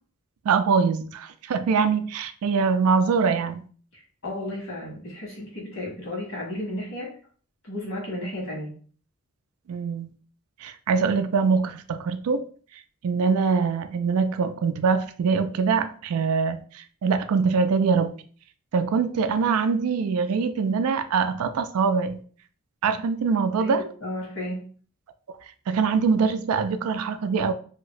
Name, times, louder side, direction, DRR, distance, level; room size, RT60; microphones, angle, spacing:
voice 1, 0.4-3.7 9.7-10.1 10.6-12.4 13.0-18.1 18.7-22.2 22.8-23.9 25.7-27.5, right 5 dB, 80° right, 0.4 m, -23 dB
voice 2, 3.9-7.1 7.6-8.7 23.6-24.6, left 1 dB, 60° left, 1.4 m, -33 dB
2.8 x 2.6 x 3.1 m
head